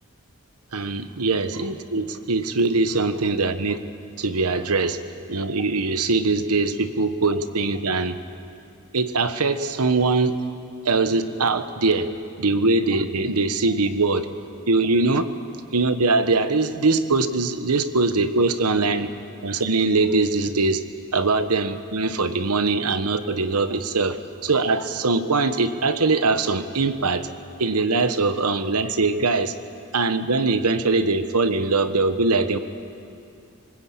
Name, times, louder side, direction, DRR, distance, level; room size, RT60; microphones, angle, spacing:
voice 1, 0.7-3.8 4.2-5.0 5.3-8.2 8.9-10.3 10.8-12.1 12.4-14.3 14.7-15.2 15.7-19.1 19.4-20.8 21.1-27.3 27.6-29.5 29.9-32.6, right 3 dB, 85° right, 10 dB, 1.2 m, -22 dB
24.5 x 20.5 x 8.7 m, 2.5 s
head